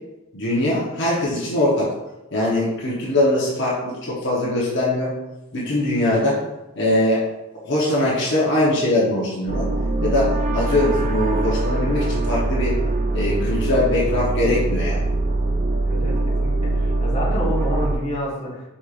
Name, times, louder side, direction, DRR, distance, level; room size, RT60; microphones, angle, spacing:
voice 1, 0.3-1.9 2.3-5.1 5.5-6.4 6.8-7.3 7.6-9.7 10.0-12.8 13.1-15.0, left 1 dB, 55° left, -6 dB, 1.0 m, -21 dB
sound 1, 9.5-18.0, right 2 dB, 35° right, 0.4 m, -22 dB
voice 2, 15.8-18.6, equal, 30° left, -6 dB, 1.3 m, -29 dB
4.8 x 4.2 x 2.5 m, 0.98 s
head